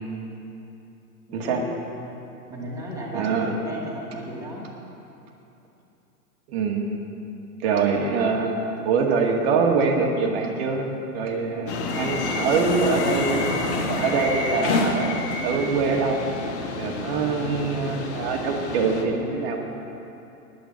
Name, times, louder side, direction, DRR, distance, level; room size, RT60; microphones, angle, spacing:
voice 1, 1.3-1.7 2.5-4.7 17.2-17.6, equal, 5° right, -5 dB, 2.4 m, -35 dB
voice 2, 3.1-3.5 6.5-6.8 7.6-8.5 8.8-10.8 11.1-15.1 15.4-16.2 16.8-19.6, right 5 dB, 40° right, 1 dB, 2.0 m, -24 dB
sound 1, 11.7-19.0, left 3 dB, 45° left, 1.6 m, -28 dB
10.0 x 9.6 x 8.7 m, 2.8 s
figure-of-eight pair, 110°, 48 cm